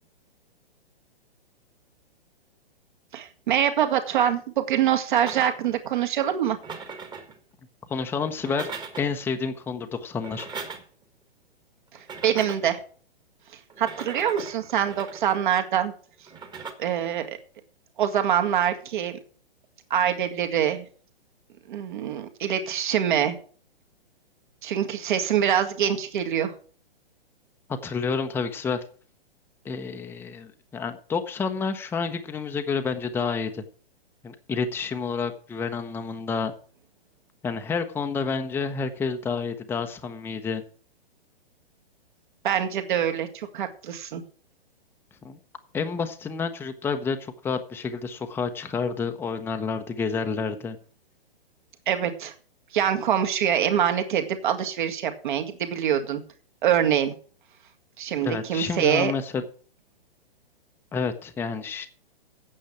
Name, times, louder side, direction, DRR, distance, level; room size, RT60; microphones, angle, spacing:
voice 1, 3.1-6.6 12.2-12.8 13.8-15.9 16.8-17.4 18.0-19.2 19.9-20.8 21.7-23.4 24.6-26.5 42.4-44.2 51.9-52.3 52.7-56.2 56.6-57.1 58.0-59.1, right 9 dB, 50° right, 6 dB, 2.0 m, -24 dB
sound 1, 5.2-5.8 6.5-7.4 8.3-9.2 10.1-11.0 12.0-12.8 13.7-15.4 16.3-16.7, right 5 dB, 15° right, 1.5 m, -39 dB
voice 2, 7.9-8.7 9.0-10.5 27.8-28.8 29.6-33.6 34.2-36.5 37.4-40.6 45.2-45.4 45.7-50.8 58.2-59.4 60.9-61.9, left 5 dB, 5° left, 6 dB, 0.8 m, -29 dB
8.9 x 7.4 x 8.4 m, 0.43 s
figure-of-eight pair, 120°, 30 cm